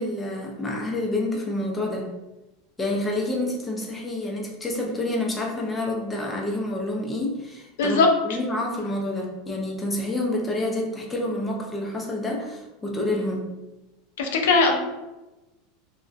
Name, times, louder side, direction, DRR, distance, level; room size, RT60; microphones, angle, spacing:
voice 1, 0.0-2.1 2.8-13.5, left 1 dB, 10° left, -1 dB, 0.4 m, -28 dB
voice 2, 14.2-14.8, left 4 dB, 85° left, 3 dB, 0.4 m, -19 dB
2.5 x 2.1 x 2.3 m, 1.0 s
supercardioid pair, 150°, 0 cm